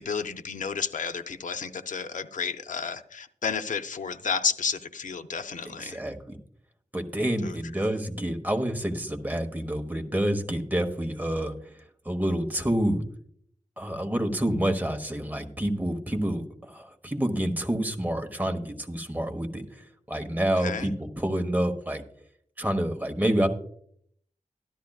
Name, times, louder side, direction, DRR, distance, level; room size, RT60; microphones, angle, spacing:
voice 1, 0.0-6.0 7.4-7.5 20.6-20.9, left 5 dB, 90° left, 9 dB, 0.6 m, -31 dB
voice 2, 5.6-6.4 6.9-11.5 12.0-13.0 13.8-22.0 22.6-23.5, right 1 dB, 15° right, 5 dB, 1.1 m, -28 dB
13.0 x 12.0 x 2.3 m, 0.66 s
wide cardioid pair, 95°, 13 cm